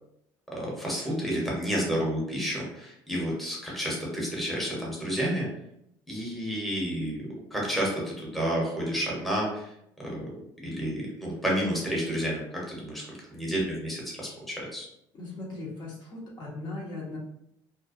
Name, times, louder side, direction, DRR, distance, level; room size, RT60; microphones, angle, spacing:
voice 1, 0.5-5.5 6.1-7.2 7.5-9.7 10.0-10.4 10.6-13.0 13.3-14.9, equal, ahead, -4 dB, 0.9 m, -30 dB
voice 2, 15.1-17.2, left 2 dB, 45° left, -4 dB, 0.8 m, -38 dB
2.5 x 2.1 x 2.5 m, 0.77 s
supercardioid pair, 100°, 10 cm